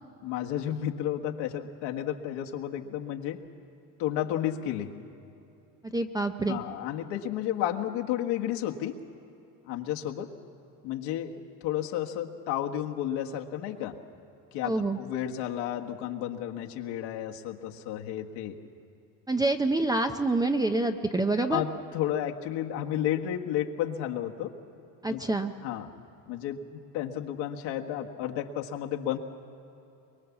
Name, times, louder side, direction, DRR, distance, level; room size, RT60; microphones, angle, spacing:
voice 1, 0.2-3.4 4.0-4.9 6.5-9.0 9.6-10.3 10.8-14.0 14.5-18.6 21.5-24.6 25.0-25.2 25.6-25.9 26.3-29.2, left 11 dB, 70° left, 2 dB, 1.7 m, -32 dB
voice 2, 5.8-6.6 14.6-15.0 19.3-21.6 25.0-25.5, right 2 dB, 10° right, 6 dB, 0.5 m, -27 dB
23.5 x 21.5 x 7.2 m, 2.9 s
cardioid pair, 145°, 43 cm